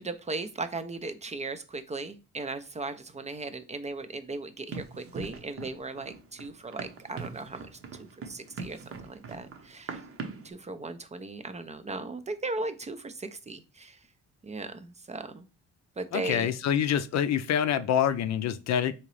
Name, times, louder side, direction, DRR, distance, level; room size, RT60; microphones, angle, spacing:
voice 1, 0.0-7.7 8.0-10.0 10.4-14.0 14.4-15.5 16.0-16.5, right 3 dB, 25° right, 0.4 m, -37 dB
Run, 4.7-10.5, right 4 dB, 50° right, 0.8 m, -42 dB
voice 2, 16.1-18.9, left 9 dB, 60° left, 0.5 m, -26 dB
3.7 x 2.8 x 3.1 m
cardioid pair, 90°, 30 cm